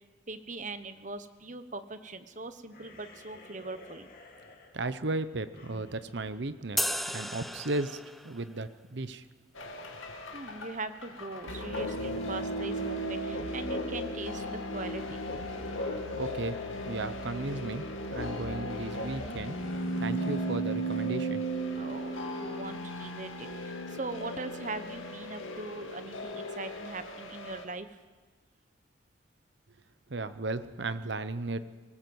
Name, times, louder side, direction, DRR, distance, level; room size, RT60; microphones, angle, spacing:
voice 1, 0.3-4.1 10.3-15.2 21.7-28.0, right 3 dB, 40° right, 11 dB, 1.0 m, -41 dB
sound 1, 2.7-7.4, left 2 dB, 45° left, 2.6 m, -54 dB
voice 2, 4.7-6.8 7.1-8.0 8.2-9.2 15.9-16.6 16.9-17.9 18.1-19.6 20.0-21.4 30.1-31.6, right 2 dB, 60° right, 12 dB, 0.8 m, -35 dB
sound 2, 6.8-8.4, equal, ahead, 0.5 m, -33 dB
sound 3, 9.6-27.6, right 1 dB, 80° left, 2.5 m, -36 dB
20.5 x 19.0 x 7.9 m, 1.4 s
head